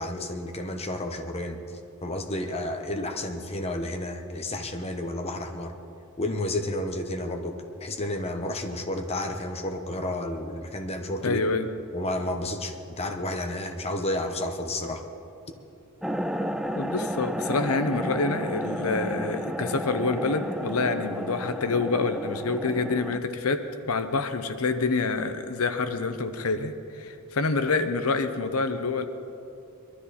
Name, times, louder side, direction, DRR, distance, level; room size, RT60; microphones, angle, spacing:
voice 1, 0.0-1.6 2.0-5.7 6.2-7.5 7.8-11.4 11.9-15.0, left 1 dB, 30° left, 5 dB, 1.1 m, -31 dB
voice 2, 11.2-11.7 16.8-29.1, left 3 dB, 90° left, 9 dB, 0.8 m, -27 dB
sound 1, 16.0-23.2, equal, ahead, 0.5 m, -32 dB
22.0 x 13.0 x 4.2 m, 2.7 s
head